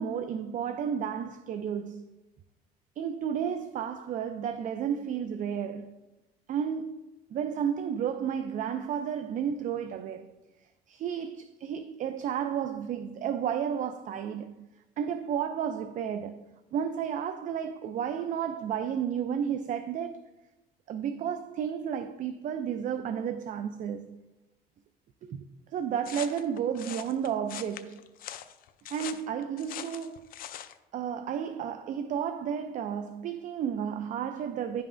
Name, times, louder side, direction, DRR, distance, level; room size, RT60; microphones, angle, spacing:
voice 1, 0.0-2.0 3.0-6.0 6.5-10.3 10.9-14.7 15.0-16.4 16.7-20.2 20.9-24.2 25.2-28.0 28.9-30.3 30.9-34.8, right 8 dB, 50° right, 0.4 m, -32 dB
sound 1, 26.0-30.8, left 11 dB, 60° left, 0.4 m, -42 dB
10.5 x 5.5 x 2.5 m
cardioid pair, 110°, 17 cm